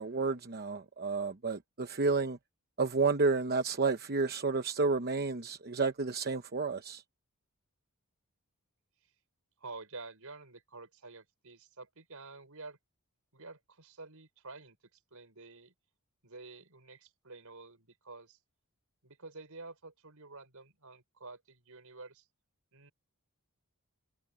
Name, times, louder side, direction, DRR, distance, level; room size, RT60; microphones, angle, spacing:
voice 1, 0.0-2.4 2.8-7.0, right 4 dB, 45° right, 0.9 m, -31 dB
voice 2, 9.6-12.8 13.3-14.8 15.1-15.7 16.2-18.4 19.0-22.3 22.7-22.9, right 3 dB, 70° right, 6.2 m, -49 dB
head